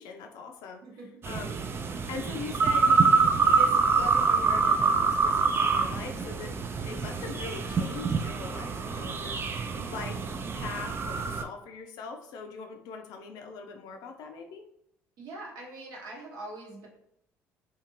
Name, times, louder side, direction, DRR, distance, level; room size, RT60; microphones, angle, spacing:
voice 1, 0.0-0.8 1.2-1.8 2.1-6.6 6.8-10.3 10.5-14.6, left 5 dB, 65° left, 4 dB, 0.4 m, -41 dB
voice 2, 0.8-1.7 15.2-16.9, right 2 dB, 65° right, -2 dB, 0.9 m, -43 dB
sound 1, 1.2-11.4, right 5 dB, 35° right, 0.3 m, -26 dB
2.5 x 2.4 x 2.9 m, 0.77 s
hypercardioid pair, 55°, 7 cm